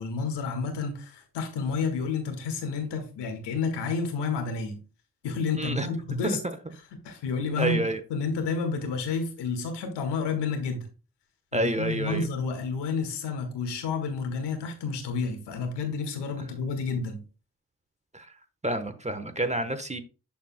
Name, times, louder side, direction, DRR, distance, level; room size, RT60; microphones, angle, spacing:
voice 1, 0.0-4.8 5.2-6.4 6.9-10.9 11.5-17.2, left 4 dB, 75° left, 1.8 m, -30 dB
voice 2, 5.5-5.9 7.6-8.0 11.5-12.3 18.1-18.3 18.6-20.0, right 1 dB, 15° right, 1.1 m, -28 dB
11.5 x 4.3 x 2.2 m
hypercardioid pair, 40°, 41 cm